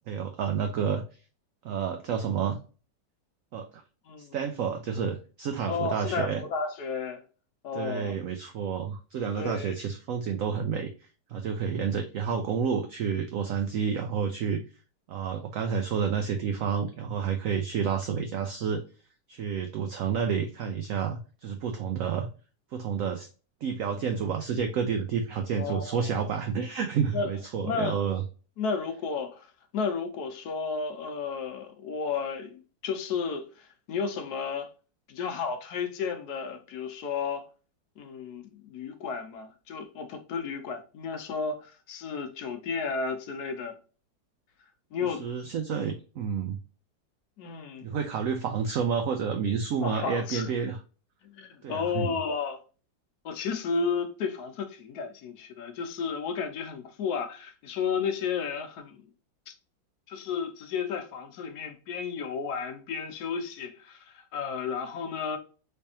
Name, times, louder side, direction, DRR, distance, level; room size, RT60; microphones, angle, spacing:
voice 1, 0.1-1.0 1.6-2.6 3.5-3.8 4.2-6.4 7.7-10.9 11.3-14.6 15.1-18.8 19.3-22.3 22.7-23.3 23.6-28.2 45.1-46.6 47.8-50.8 51.6-52.2, right 6 dB, 85° right, 0.7 m, -30 dB
voice 2, 4.1-4.4 5.7-7.2 7.6-8.1 9.3-9.8 25.6-26.3 27.1-27.3 27.6-28.0 28.6-29.5 29.7-34.7 35.1-37.5 38.0-43.8 44.9-45.2 47.4-47.9 49.8-50.5 51.2-52.6 53.2-59.1 59.5-59.6 60.1-65.4, left 5 dB, 70° left, 1.1 m, -33 dB
3.4 x 3.3 x 2.7 m
omnidirectional pair, 2.0 m